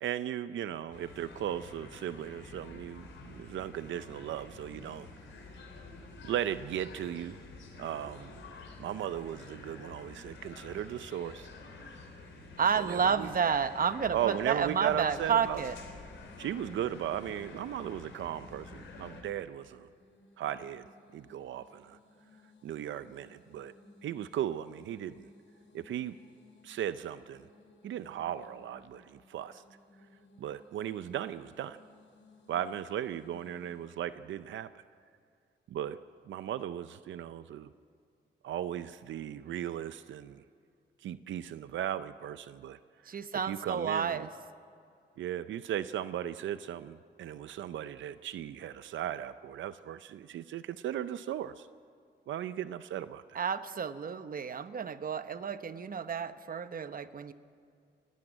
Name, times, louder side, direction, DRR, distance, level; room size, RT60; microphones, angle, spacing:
voice 1, 0.0-5.1 6.2-7.4 7.8-8.4 8.8-11.5 12.9-13.3 14.1-15.6 16.4-19.9 20.4-20.9 21.1-22.0 22.6-23.7 24.0-25.3 25.7-26.2 26.6-27.5 27.8-29.6 30.4-31.8 32.5-34.7 35.7-36.0 36.3-37.7 38.4-40.4 41.0-42.8 43.4-44.3 45.2-51.7 52.3-53.4, right 10 dB, 90° right, 13 dB, 0.5 m, -37 dB
sound 1, 0.9-19.2, left 3 dB, 90° left, 3.6 m, -49 dB
voice 2, 12.6-15.8 43.1-44.3 53.3-57.3, right 7 dB, 50° right, 12 dB, 0.9 m, -31 dB
sound 2, 15.0-33.9, left 2 dB, 75° left, 5.2 m, -61 dB
19.0 x 16.0 x 8.9 m, 2.3 s
cardioid pair, 90°, 19 cm